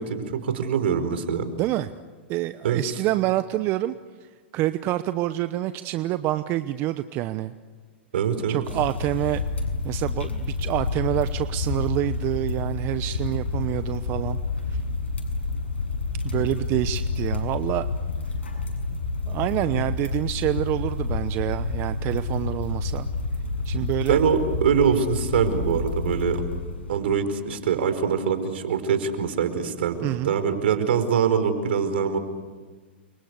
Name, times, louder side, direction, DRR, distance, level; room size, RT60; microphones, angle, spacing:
voice 1, 0.0-1.5 2.6-2.8 8.1-8.6 24.1-26.4 26.9-30.0 30.2-32.2, right 7 dB, 70° right, 9 dB, 4.7 m, -23 dB
voice 2, 1.6-1.9 2.3-3.9 4.5-7.5 8.5-9.4 9.8-14.4 14.7-14.8 16.2-17.9 19.3-23.1 23.6-24.2 30.0-30.3, right 15 dB, 40° right, 11 dB, 0.9 m, -27 dB
sound 1, 8.6-27.0, left 3 dB, 90° left, 7.4 m, -29 dB
30.0 x 24.5 x 8.2 m, 1.4 s
hypercardioid pair, 120°, 6 cm